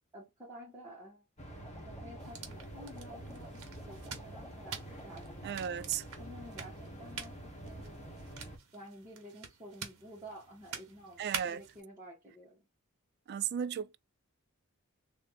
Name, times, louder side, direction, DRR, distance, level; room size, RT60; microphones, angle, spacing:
voice 1, 0.1-1.2 1.9-5.7 6.2-8.3 8.7-12.7, equal, 15° right, 1.6 m, -51 dB
sound 1, 1.4-8.6, right 1 dB, 35° left, 1.3 m, -47 dB
sound 2, 1.5-5.8 6.1-6.6, equal, 15° left, 0.8 m, -57 dB
sound 3, 2.2-11.8, right 7 dB, 80° right, 1.1 m, -47 dB
voice 2, 5.4-6.0 11.2-11.6 13.3-14.0, right 8 dB, 50° right, 0.3 m, -35 dB
3.2 x 2.7 x 4.0 m
head